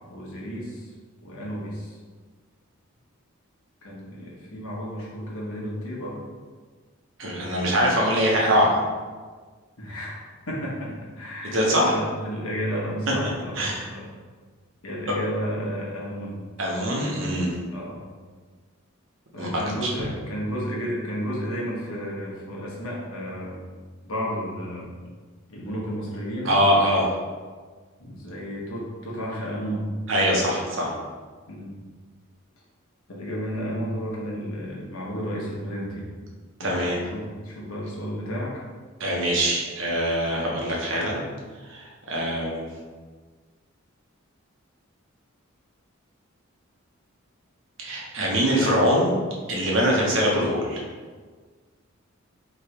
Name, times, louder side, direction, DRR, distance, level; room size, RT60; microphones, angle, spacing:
voice 1, 0.1-0.9 1.2-2.0 3.8-6.2 9.8-10.2 10.5-11.6 11.9-14.1 14.8-16.4 17.7-18.0 19.3-23.6 24.0-24.9 25.5-26.5 28.0-29.9 31.5-31.8 33.1-36.1 36.6-38.5, equal, 85° left, -4 dB, 1.2 m, -32 dB
voice 2, 7.2-8.8 11.4-12.0 13.2-13.3 13.6-13.9 15.1-15.2 16.6-17.5 19.3-19.5 19.8-19.9 26.4-27.1 30.1-30.9 36.6-37.0 39.0-41.2 41.7-42.6 47.8-49.1 49.5-50.8, equal, 65° right, -3 dB, 1.0 m, -23 dB
3.4 x 3.1 x 4.4 m, 1.5 s
head